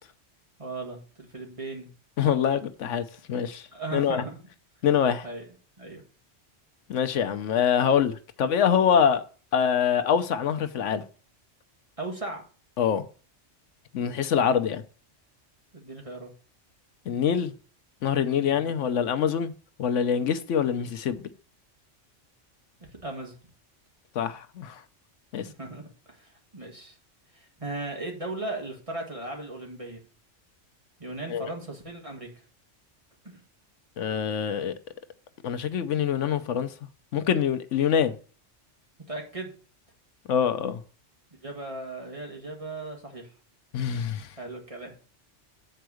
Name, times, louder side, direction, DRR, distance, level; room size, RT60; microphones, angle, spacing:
voice 1, 0.6-1.9 3.7-4.4 5.2-5.5 5.8-6.0 12.0-12.4 15.7-16.3 18.4-18.6 22.8-23.3 25.4-27.0 27.3-30.0 31.0-32.3 33.2-33.4 39.1-39.5 41.4-43.3 44.4-45.0, right 2 dB, 25° right, 2.1 m, -37 dB
voice 2, 2.2-4.2 4.8-5.3 6.9-9.2 9.5-11.0 12.8-13.0 13.9-14.8 17.1-17.5 18.0-19.5 19.8-21.2 24.1-24.8 25.3-25.4 31.3-31.5 34.0-34.7 35.4-36.7 37.1-38.2 40.3-40.8 43.7-44.3, left 8 dB, 80° left, 1.1 m, -25 dB
7.8 x 4.6 x 6.3 m
omnidirectional pair, 1.2 m